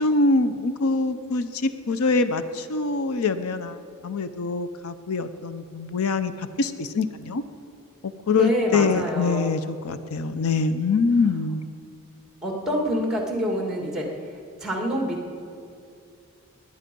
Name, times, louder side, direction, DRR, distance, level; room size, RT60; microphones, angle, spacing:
voice 1, 0.0-7.4 8.3-11.7, left 3 dB, 80° left, 11 dB, 0.6 m, -24 dB
voice 2, 8.3-9.4 12.4-14.0 14.6-15.3, equal, ahead, 1 dB, 1.9 m, -26 dB
20.5 x 9.4 x 5.3 m, 2.4 s
head